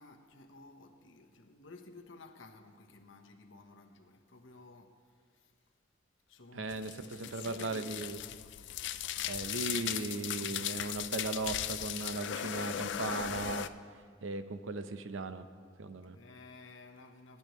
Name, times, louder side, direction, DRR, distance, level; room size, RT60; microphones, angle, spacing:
voice 1, 0.0-5.0 5.4-5.5 6.3-8.1 16.1-17.4, left 3 dB, 80° left, 1.0 m, -54 dB
voice 2, 6.5-8.2 9.2-13.7 14.2-15.5 15.8-16.2, right 3 dB, 80° right, 0.7 m, -37 dB
sound 1, 6.7-13.7, left 11 dB, 65° left, 0.4 m, -38 dB
20.0 x 10.5 x 3.1 m
head